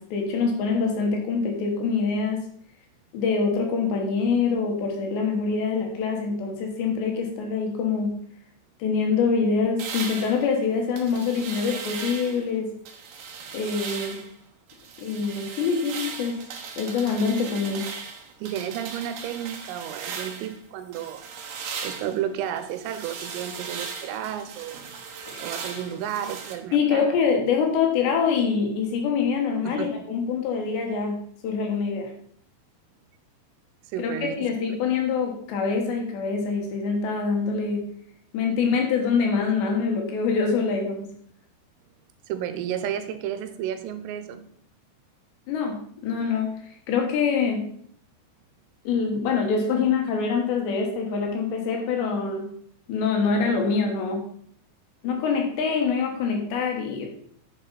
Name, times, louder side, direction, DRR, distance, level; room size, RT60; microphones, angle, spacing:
voice 1, 0.0-2.5 3.1-8.1 8.8-12.7 13.5-14.2 15.0-16.4 16.8-17.9 25.3-25.5 26.7-32.1 34.0-37.9 38.3-41.1 45.5-46.6 46.9-47.6 48.8-52.5 52.9-54.3 55.0-57.1, left 5 dB, 70° left, 2 dB, 3.2 m, -25 dB
sound 1, 9.8-12.5 12.9-14.3 14.7-20.6 20.9-26.5, right 6 dB, 70° right, 2.4 m, -37 dB
voice 2, 18.4-21.3 21.8-24.9 25.4-27.1 29.6-30.0 33.9-34.5 42.3-44.5, right 10 dB, 85° right, 10 dB, 3.5 m, -32 dB
9.2 x 7.1 x 4.1 m, 0.63 s
omnidirectional pair, 5.8 m